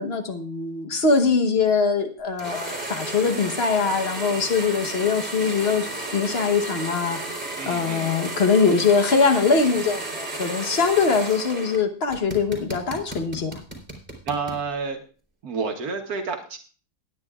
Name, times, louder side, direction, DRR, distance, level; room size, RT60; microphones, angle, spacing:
voice 1, 0.0-13.6, left 5 dB, 40° left, 7 dB, 1.2 m, -22 dB
sound 1, 2.4-11.8 12.1-14.6, right 2 dB, 5° right, 3.2 m, -33 dB
voice 2, 7.6-8.1 14.3-15.0 15.4-16.6, right 4 dB, 65° right, 3 dB, 1.6 m, -29 dB
19.0 x 9.8 x 2.4 m, 0.39 s
omnidirectional pair, 1.7 m